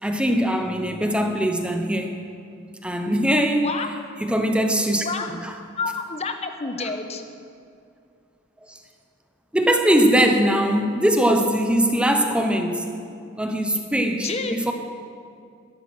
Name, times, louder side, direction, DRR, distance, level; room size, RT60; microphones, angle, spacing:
voice 1, 0.0-2.2 2.8-3.7 4.2-5.1 5.4-5.5 8.6-8.8 9.5-12.9 13.4-14.7, equal, 5° right, 4 dB, 0.9 m, -21 dB
voice 2, 5.8-7.2 14.2-14.5, left 4 dB, 30° left, 7 dB, 1.0 m, -28 dB
12.5 x 12.0 x 6.2 m, 2.4 s
head